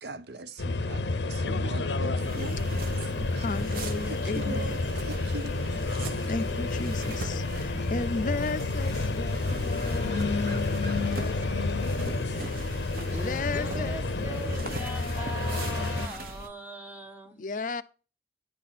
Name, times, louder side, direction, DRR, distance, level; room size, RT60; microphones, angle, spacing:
voice 1, 0.0-2.8 3.3-3.5 4.0-5.7 6.5-6.7, right 2 dB, 75° right, 0.7 m, -41 dB
sound 1, 0.6-16.1, left 3 dB, 85° left, 0.7 m, -30 dB
sound 2, 2.2-16.5, right 2 dB, 55° right, 0.9 m, -39 dB
voice 2, 3.3-4.8 6.3-10.8 11.1-11.7 12.3-16.1 17.4-17.8, left 3 dB, 45° left, 0.4 m, -36 dB
voice 3, 13.1-17.4, right 2 dB, 10° right, 0.7 m, -41 dB
9.8 x 4.3 x 5.8 m
head